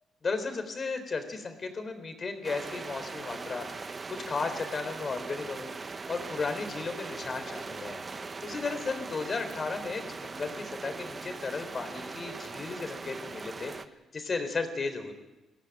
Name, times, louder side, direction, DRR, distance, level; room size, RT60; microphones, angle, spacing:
voice 1, 0.2-13.7 14.1-15.1, left 4 dB, 40° left, 8 dB, 3.9 m, -35 dB
sound 1, 2.4-13.9, right 4 dB, 35° right, 1.3 m, -40 dB
23.0 x 16.0 x 9.1 m, 1.1 s
cardioid pair, 90°, 0 cm